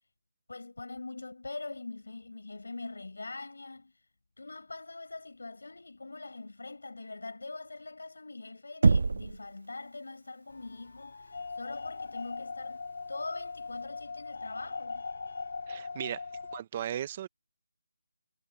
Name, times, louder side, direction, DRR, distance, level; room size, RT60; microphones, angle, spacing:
voice 1, 0.5-3.9 4.4-15.0, left 3 dB, 75° left, 5.8 m, -43 dB
Knock, 8.8-9.5, right 4 dB, 50° right, 0.4 m, -23 dB
sound 1, 10.5-16.6, left 4 dB, 50° left, 4.5 m, -40 dB
voice 2, 15.7-16.2 16.5-17.3, right 10 dB, 20° right, 1.1 m, -36 dB
figure-of-eight pair, 175°, 0 cm